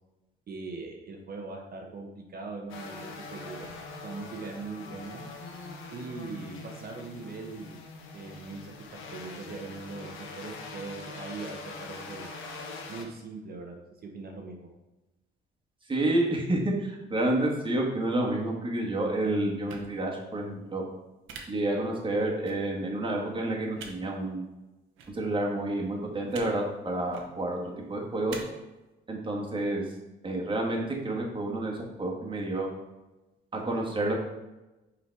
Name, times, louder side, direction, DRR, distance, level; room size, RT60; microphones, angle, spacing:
voice 1, 0.5-3.7 4.0-5.2 5.9-7.8 8.1-8.7 9.1-12.3 12.9-14.7, right 3 dB, 50° right, 1 dB, 1.0 m, -41 dB
sound 1, 2.7-13.0, left 3 dB, 85° left, 1.0 m, -43 dB
voice 2, 15.9-20.8 21.5-24.5 25.1-27.6 27.9-28.4 29.1-29.8 30.2-32.7 33.5-34.1, right 1 dB, 25° right, -1 dB, 1.7 m, -29 dB
sound 2, 19.7-19.8 21.3-21.4 22.4-22.5 23.7-23.9 25.0-25.1 26.3-26.5 27.0-27.2 28.3-28.4, right 6 dB, 85° right, 1.0 m, -42 dB
5.7 x 4.2 x 4.6 m, 1.0 s
cardioid pair, 90°, 20 cm